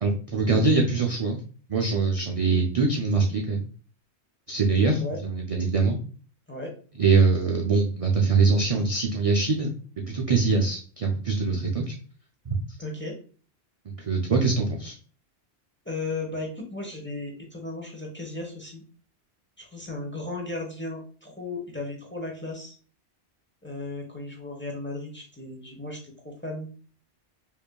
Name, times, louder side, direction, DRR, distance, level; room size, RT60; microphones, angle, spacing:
voice 1, 0.0-1.4 1.7-3.7 4.5-6.0 7.0-9.7 10.1-11.9 12.5-12.6 14.0-15.0, right 4 dB, 50° right, 1 dB, 0.4 m, -23 dB
voice 2, 12.8-13.1 15.8-18.8 19.6-22.8 23.6-26.7, left 2 dB, 10° left, -1 dB, 0.8 m, -35 dB
5.2 x 2.6 x 2.2 m, 0.41 s
omnidirectional pair, 1.1 m